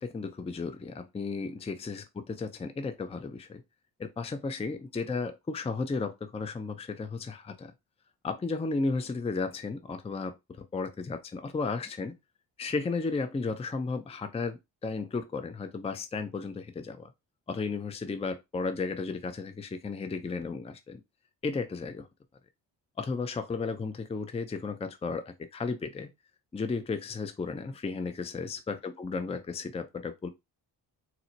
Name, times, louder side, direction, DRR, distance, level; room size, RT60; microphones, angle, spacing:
voice 1, 0.0-3.6 4.0-7.7 8.2-12.1 12.6-17.1 17.5-21.0 21.4-22.1 23.0-26.1 26.5-30.3, left 4 dB, 15° left, 0.5 m, -34 dB
4.1 x 2.1 x 2.7 m
supercardioid pair, 55°, 45 cm